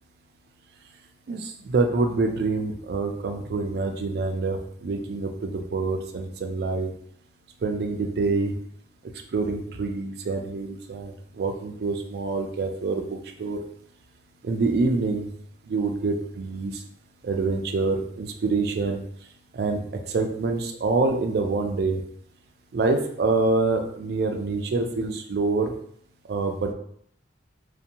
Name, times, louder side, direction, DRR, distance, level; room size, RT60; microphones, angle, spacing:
voice 1, 1.3-6.9 7.6-8.5 9.3-13.6 14.4-15.3 15.7-16.8 17.2-19.0 19.5-19.8 20.1-22.0 22.7-25.7 26.3-26.7, right 3 dB, 55° right, 4 dB, 0.3 m, -26 dB
2.5 x 2.2 x 2.8 m, 0.67 s
head